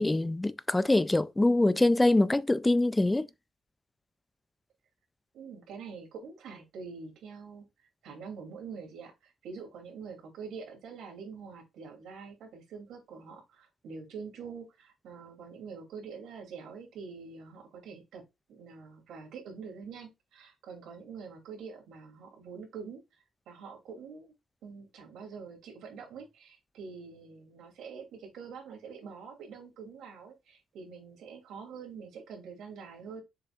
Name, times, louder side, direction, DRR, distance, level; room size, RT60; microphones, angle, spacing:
voice 1, 0.0-3.3, left 2 dB, 10° left, 0.4 m, -24 dB
voice 2, 5.3-7.7 8.0-18.2 18.5-23.0 23.5-24.3 24.6-33.2, right 5 dB, 75° right, 2.9 m, -45 dB
6.8 x 5.6 x 2.5 m
cardioid pair, 140°, 0 cm